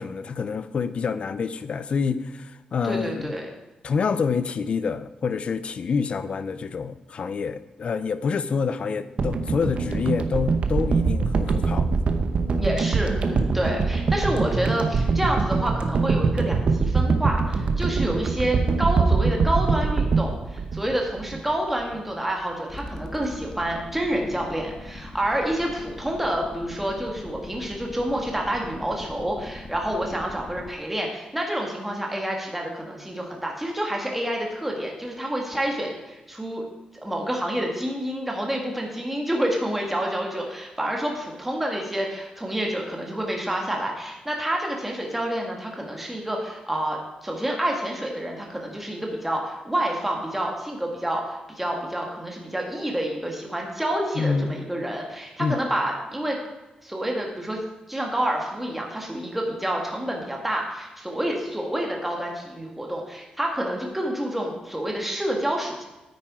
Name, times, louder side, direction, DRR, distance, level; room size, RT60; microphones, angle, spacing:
voice 1, 0.0-3.3 3.8-11.9 54.2-54.6 55.4-55.6, left 5 dB, 50° left, 13 dB, 0.5 m, -27 dB
voice 2, 2.8-3.5 12.6-36.6 36.9-56.4 56.8-57.6 57.9-65.8, right 1 dB, 5° right, 0 dB, 1.7 m, -28 dB
sound 1, 9.2-21.5 21.8-21.9, right 4 dB, 50° right, 0.8 m, -23 dB
sound 2, 22.7-30.7, left 1 dB, 25° left, 0.9 m, -41 dB
9.4 x 9.0 x 4.8 m, 1.1 s
wide cardioid pair, 155°, 3 cm